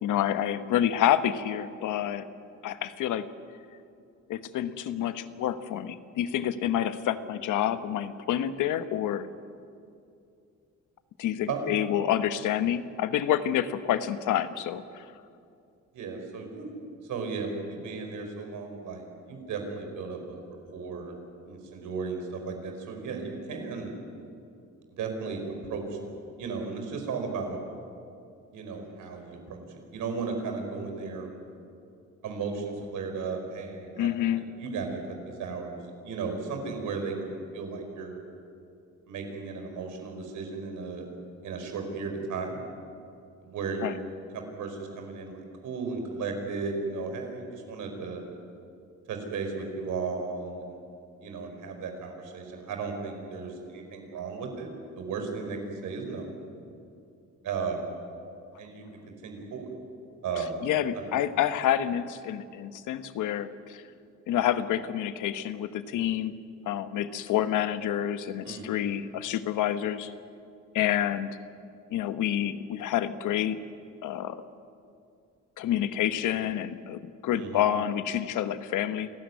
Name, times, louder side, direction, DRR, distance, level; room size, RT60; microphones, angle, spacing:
voice 1, 0.0-2.3 2.6-3.3 4.3-9.3 11.2-15.1 34.0-34.4 43.8-44.0 60.6-63.8 64.3-66.4 66.7-70.1 70.7-71.4 71.9-73.6 74.0-74.4 75.6-79.1, left 11 dB, 85° left, 11 dB, 1.2 m, -28 dB
voice 2, 15.9-16.7 17.0-20.4 20.7-21.1 21.5-23.9 25.0-25.4 25.7-26.1 26.4-27.6 28.5-31.3 32.2-38.2 39.1-41.0 41.4-42.6 43.4-43.9 44.3-48.2 49.1-50.8 51.2-54.7 55.0-56.3 57.4-57.9 58.6-59.7 60.2-60.6 60.9-61.1 68.4-68.8 77.3-77.6, right 4 dB, 80° right, 4 dB, 4.9 m, -35 dB
28.0 x 14.0 x 9.6 m, 2.5 s
cardioid pair, 90°, 30 cm